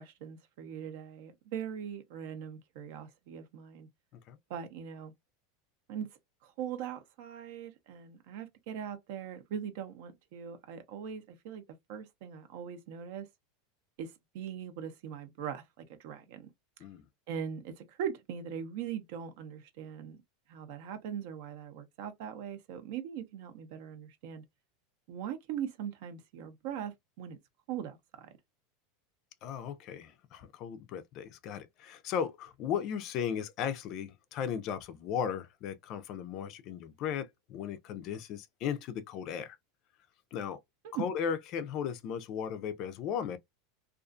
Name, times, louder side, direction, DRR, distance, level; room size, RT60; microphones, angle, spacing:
voice 1, 0.0-3.9 4.5-5.1 5.9-6.1 6.4-11.6 11.9-13.3 14.0-16.5 17.3-20.2 20.5-24.4 25.1-27.4 27.7-28.3 40.8-41.0, right 8 dB, 65° right, 0.6 m, -41 dB
voice 2, 29.4-39.6 40.3-40.6 41.0-43.4, left 8 dB, 40° left, 0.4 m, -36 dB
2.4 x 2.4 x 2.4 m
supercardioid pair, 150°, 0 cm